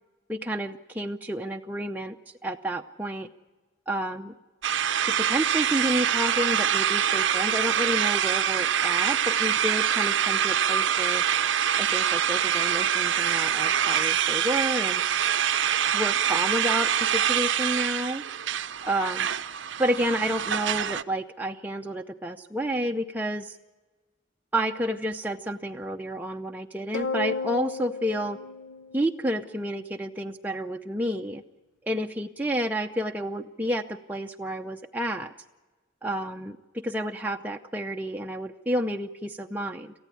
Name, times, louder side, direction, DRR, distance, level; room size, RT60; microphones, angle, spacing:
voice 1, 0.3-3.3 3.9-4.3 5.0-11.2 11.8-15.0 15.9-18.2 18.8-19.3 19.8-23.6 24.5-28.4 28.9-31.4 31.9-35.3 36.0-36.6 36.8-39.9, right 1 dB, 10° right, 2 dB, 0.6 m, -30 dB
sound 1, 4.6-21.0, right 9 dB, 70° right, 0.6 m, -25 dB
sound 2, 26.9-29.5, left 4 dB, 75° left, 0.8 m, -33 dB
28.0 x 15.0 x 8.4 m, 1.3 s
head